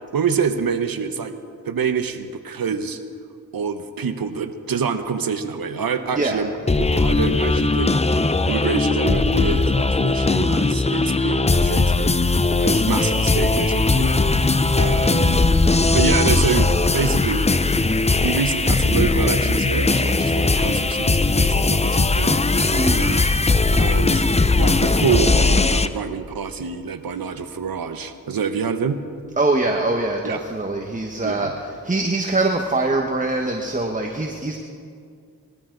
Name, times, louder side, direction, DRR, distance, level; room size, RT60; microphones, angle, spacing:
voice 1, 0.1-1.3 1.6-3.0 3.5-6.5 6.8-12.1 12.6-15.4 15.9-17.6 18.1-22.7 23.0-23.5 23.8-24.2 24.6-29.0 30.2-30.4 31.2-31.5, right 6 dB, 75° right, 9 dB, 1.0 m, -26 dB
voice 2, 6.1-6.4 22.7-23.1 29.4-34.6, right 2 dB, 20° right, 2 dB, 1.3 m, -23 dB
sound 1, 6.7-25.9, left 3 dB, 20° left, 0.6 m, -19 dB
20.5 x 14.0 x 3.9 m, 2.2 s
cardioid pair, 60°, 35 cm